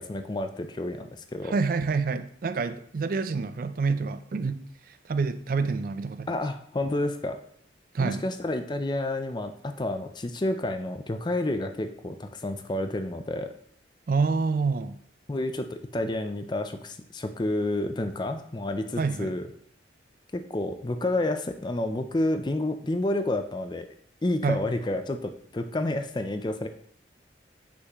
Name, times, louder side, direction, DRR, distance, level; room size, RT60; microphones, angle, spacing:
voice 1, 0.0-1.5 6.3-7.4 8.0-13.5 15.3-19.5 20.3-23.9 24.2-26.7, left 1 dB, 25° left, 7 dB, 0.4 m, -30 dB
voice 2, 1.4-6.3 7.9-8.2 14.1-15.0 19.0-19.4 24.4-24.6, right 4 dB, 50° right, 10 dB, 0.4 m, -27 dB
6.3 x 5.8 x 3.0 m, 0.63 s
head